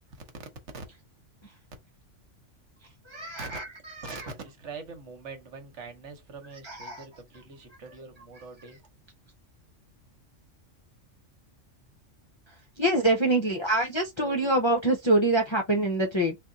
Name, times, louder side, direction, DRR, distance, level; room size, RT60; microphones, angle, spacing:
voice 1, 3.0-4.3 6.6-7.0 12.5-16.4, right 1 dB, 35° left, 0.5 m, -26 dB
voice 2, 4.0-8.8, right 4 dB, 70° right, 1.3 m, -43 dB
3.5 x 2.6 x 3.8 m
omnidirectional pair, 1.3 m